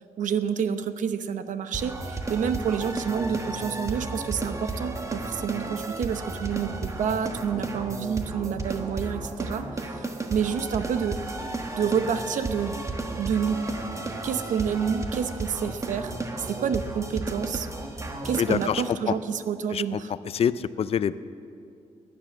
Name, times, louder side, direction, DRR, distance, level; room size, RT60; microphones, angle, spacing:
voice 1, 0.2-11.2 11.8-12.8 13.2-13.6 14.2-17.7 18.2-20.1, right 7 dB, 80° right, 10 dB, 0.8 m, -28 dB
sound 1, 1.7-18.9, right 2 dB, 25° right, 1.3 m, -33 dB
voice 2, 18.4-19.1 19.7-19.8 20.3-21.2, left 8 dB, 50° left, 15 dB, 0.4 m, -25 dB
18.0 x 10.5 x 6.2 m, 2.5 s
wide cardioid pair, 125°, 13 cm